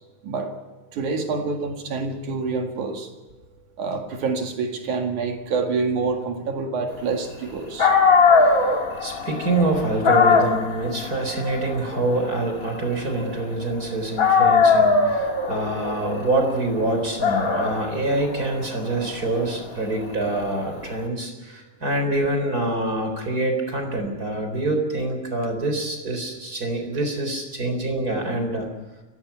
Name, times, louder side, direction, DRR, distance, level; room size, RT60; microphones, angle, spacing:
voice 1, 0.2-0.5 0.9-3.1 3.8-7.9, right 4 dB, 65° right, 4 dB, 3.3 m, -27 dB
Dog, 7.5-7.6 7.8-13.8 14.2-21.0, left 4 dB, 30° left, 2.2 m, -21 dB
voice 2, 9.0-28.7, right 2 dB, 25° right, 4 dB, 4.2 m, -25 dB
29.0 x 16.5 x 5.8 m, 1.2 s
omnidirectional pair, 3.7 m